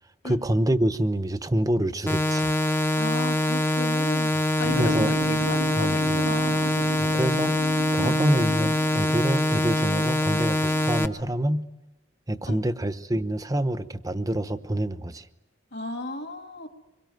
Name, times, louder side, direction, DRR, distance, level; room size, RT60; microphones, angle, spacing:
voice 1, 0.2-2.5 4.8-5.2 5.8-6.0 7.0-7.6 7.9-11.7 12.3-15.2, right 1 dB, 20° right, 12 dB, 0.9 m, -26 dB
sound 1, 2.1-11.1, left 1 dB, 10° left, 0.8 m, -24 dB
voice 2, 3.0-6.8 8.0-8.3 12.5-12.6 15.7-16.7, left 2 dB, 55° left, 5 dB, 2.4 m, -35 dB
sound 2, 4.6-10.9, right 2 dB, 75° right, 0.9 m, -35 dB
25.5 x 22.5 x 9.3 m, 1.1 s
head